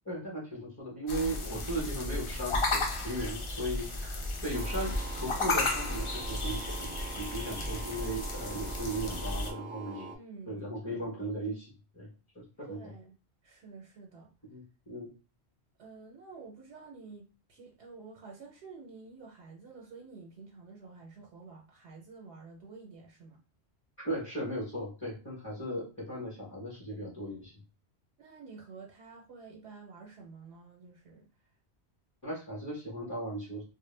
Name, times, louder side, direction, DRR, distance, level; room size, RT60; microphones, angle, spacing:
voice 1, 0.0-10.1 10.5-12.1 12.6-12.8 14.5-15.1 24.0-27.5 32.2-33.6, right 1 dB, 20° left, 0.7 m, -37 dB
sound 1, 1.1-9.5, left 2 dB, 50° left, 0.3 m, -34 dB
sound 2, 4.5-10.2, right 5 dB, 60° right, 0.7 m, -44 dB
voice 2, 10.1-11.1 12.7-13.2 13.4-14.3 15.8-23.4 28.2-31.3, right 4 dB, 85° right, 0.9 m, -50 dB
2.1 x 2.1 x 3.1 m
omnidirectional pair, 1.1 m